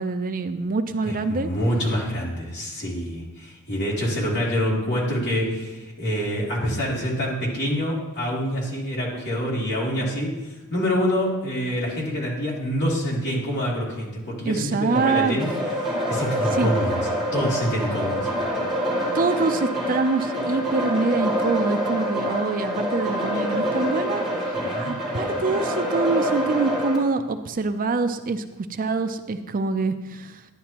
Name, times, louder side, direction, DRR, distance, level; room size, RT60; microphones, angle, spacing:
voice 1, 0.0-1.5 14.5-15.4 16.5-16.7 19.1-24.3 24.8-28.4 28.7-30.4, right 3 dB, 40° right, 9 dB, 0.5 m, -25 dB
voice 2, 1.0-15.5 15.8-18.3 24.5-24.9, equal, 55° left, -4 dB, 3.0 m, -26 dB
sound 1, 14.9-27.0, equal, ahead, 3.5 m, -26 dB
11.5 x 10.0 x 3.0 m, 1.1 s
head